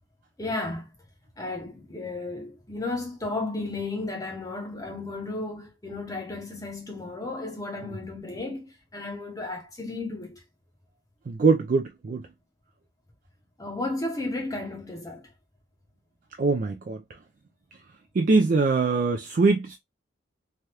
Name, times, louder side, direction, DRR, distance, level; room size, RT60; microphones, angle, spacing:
voice 1, 0.4-0.9 1.4-10.4 13.6-15.3, left 2 dB, 20° left, 0.7 m, -34 dB
voice 2, 11.3-12.3 16.4-17.0 18.2-19.8, right 4 dB, 45° right, 0.4 m, -22 dB
3.3 x 2.3 x 2.8 m
head